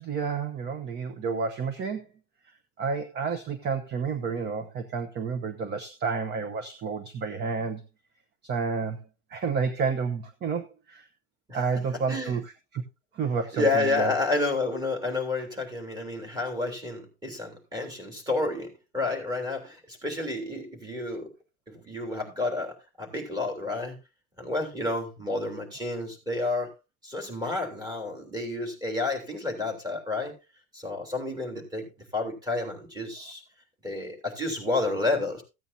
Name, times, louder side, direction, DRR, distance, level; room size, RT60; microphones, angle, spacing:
voice 1, 0.0-2.1 2.8-7.8 8.4-9.0 9.3-11.1 11.5-12.8 13.1-14.1, right 5 dB, 30° right, 0.9 m, -30 dB
voice 2, 12.1-12.4 13.5-21.3 21.7-24.0 24.4-26.7 27.0-30.3 30.7-31.9 32.1-33.4 33.8-35.4, left 2 dB, 10° right, 3.3 m, -30 dB
15.0 x 8.8 x 2.7 m
cardioid pair, 165°, 34 cm